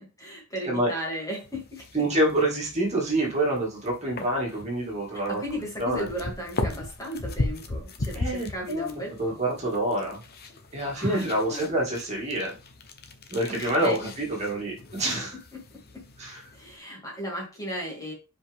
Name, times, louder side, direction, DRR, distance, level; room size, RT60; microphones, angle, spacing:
voice 1, 0.2-2.0 5.3-9.4 10.9-11.9 13.5-14.1 16.5-18.1, equal, 15° left, -2 dB, 2.8 m, -35 dB
sound 1, 1.4-16.8, left 2 dB, 45° left, 1.0 m, -38 dB
voice 2, 1.9-6.1 8.1-8.9 9.2-10.2 10.7-12.5 13.3-15.4 16.2-16.4, right 1 dB, 30° right, -2 dB, 2.5 m, -27 dB
7.1 x 5.1 x 3.7 m, 0.30 s
head